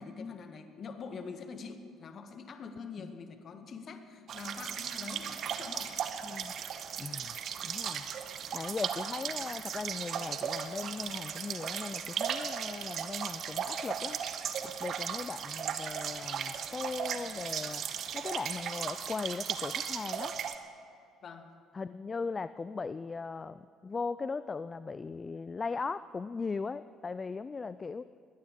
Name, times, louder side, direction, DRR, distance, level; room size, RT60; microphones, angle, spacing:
voice 1, 0.0-6.0 21.2-21.6, left 5 dB, 45° left, 8 dB, 1.5 m, -45 dB
sound 1, 4.3-20.6, right 8 dB, 55° right, 1.0 m, -36 dB
voice 2, 6.2-6.5 7.0-7.4 7.6-8.1 8.5-14.2 14.6-17.9 18.1-20.3 21.7-28.1, left 4 dB, 30° left, 15 dB, 0.4 m, -38 dB
21.0 x 17.0 x 3.7 m, 2.5 s
figure-of-eight pair, 50°, 0 cm